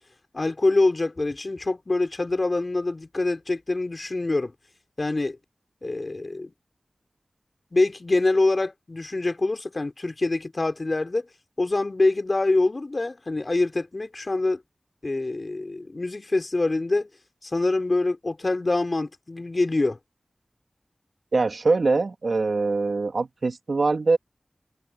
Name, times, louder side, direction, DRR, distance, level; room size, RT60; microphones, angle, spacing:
voice 1, 0.3-4.5 5.0-5.4 5.8-6.5 7.7-11.3 11.6-14.6 15.0-17.1 17.4-20.0, left 2 dB, 50° left, 3.2 m, -25 dB
voice 2, 21.3-24.2, right 3 dB, 75° right, 1.9 m, -23 dB
cardioid pair, 45°, 0 cm